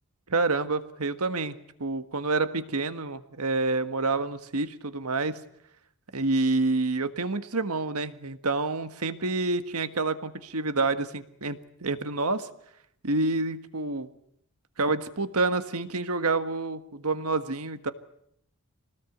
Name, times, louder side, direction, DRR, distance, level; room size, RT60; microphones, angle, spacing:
voice 1, 0.3-5.4 6.1-12.5 13.0-14.1 14.8-17.9, right 3 dB, 80° right, 10 dB, 1.6 m, -28 dB
25.0 x 19.0 x 8.0 m, 0.73 s
head